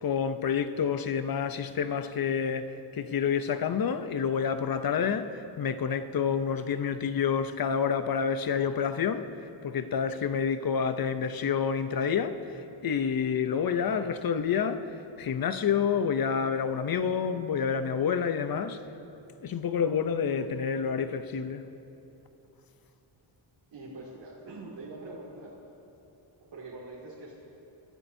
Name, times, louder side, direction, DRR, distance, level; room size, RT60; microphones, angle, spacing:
voice 1, 0.0-18.8 19.4-21.6, left 7 dB, 50° left, 0.7 m, -28 dB
voice 2, 23.7-25.6 26.5-27.3, right 2 dB, 80° right, 2.6 m, -43 dB
24.5 x 12.5 x 2.7 m
wide cardioid pair, 140°, 46 cm